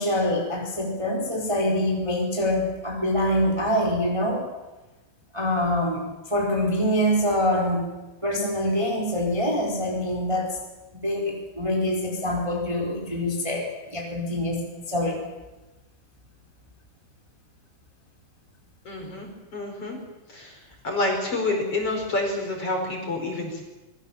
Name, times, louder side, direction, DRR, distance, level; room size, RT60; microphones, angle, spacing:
voice 1, 0.0-4.5 5.3-7.9 8.2-10.6 11.0-14.6 14.9-15.2, left 1 dB, 5° right, -1 dB, 3.8 m, -25 dB
voice 2, 18.9-20.0 20.3-20.6 20.8-23.6, left 2 dB, 35° left, 2 dB, 5.5 m, -28 dB
25.5 x 21.5 x 7.4 m, 1.1 s
omnidirectional pair, 4.8 m